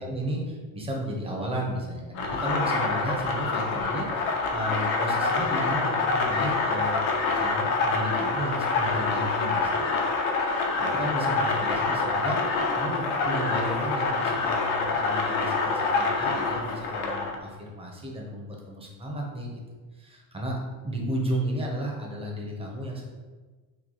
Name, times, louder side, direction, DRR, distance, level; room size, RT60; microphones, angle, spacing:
voice 1, 0.0-7.0 7.3-10.0 10.4-19.6 19.9-23.0, right 1 dB, 15° right, -1 dB, 0.6 m, -33 dB
sound 1, 2.1-17.3, left 3 dB, 80° left, 0.7 m, -26 dB
3.1 x 2.3 x 3.8 m, 1.3 s
supercardioid pair, 115°, 42 cm